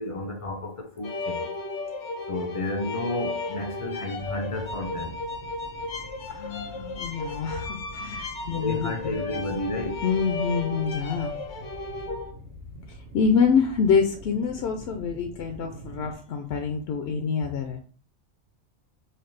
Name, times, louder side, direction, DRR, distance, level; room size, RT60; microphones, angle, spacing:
voice 1, 0.0-1.5 2.3-5.2 8.4-10.0, left 2 dB, 45° left, 0.4 m, -31 dB
sound 1, 1.0-12.3, left 3 dB, 85° left, 1.3 m, -35 dB
sound 2, 4.1-16.2, right 2 dB, 55° right, 1.0 m, -45 dB
voice 2, 6.3-8.9 10.0-11.3 12.9-17.8, left 6 dB, 65° left, 0.8 m, -26 dB
5.6 x 2.3 x 3.2 m
omnidirectional pair, 1.2 m